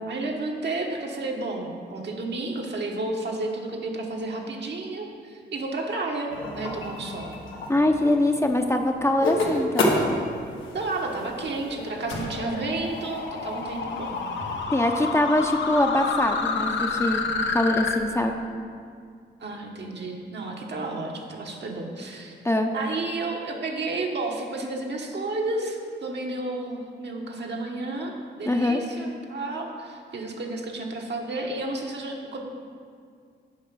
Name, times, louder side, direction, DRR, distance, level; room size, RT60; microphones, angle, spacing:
voice 1, 0.1-7.3 10.7-14.2 19.4-22.3 22.7-32.4, right 2 dB, 60° right, 0 dB, 1.2 m, -31 dB
sound 1, 6.3-14.7, left 1 dB, 85° left, 1.1 m, -31 dB
voice 2, 7.7-9.9 14.7-17.2 17.5-18.4 22.4-22.7 28.5-28.8, left 1 dB, 15° left, 3 dB, 0.6 m, -23 dB
sound 2, 10.3-18.0, left 5 dB, 70° left, 0.7 m, -30 dB
7.3 x 4.9 x 6.2 m, 2.2 s
cardioid pair, 60°, 20 cm